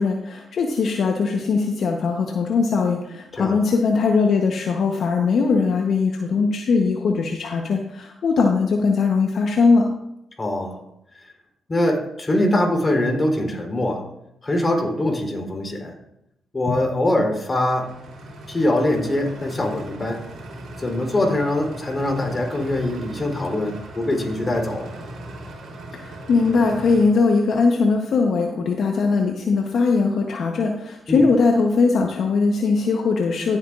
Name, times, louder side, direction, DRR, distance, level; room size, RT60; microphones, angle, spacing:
voice 1, 0.0-9.9 16.7-16.8 25.9-33.6, left 4 dB, 65° left, 2 dB, 0.9 m, -20 dB
voice 2, 3.4-3.7 10.4-10.8 11.1-11.2 11.7-14.0 14.4-16.0 16.5-17.9 18.5-20.2 20.8-24.9 31.1-31.3, left 1 dB, 30° left, 2 dB, 3.2 m, -23 dB
sound 1, 17.7-27.0, right 1 dB, 75° right, 3.2 m, -38 dB
14.5 x 7.9 x 2.4 m, 0.80 s
supercardioid pair, 55°, 0 cm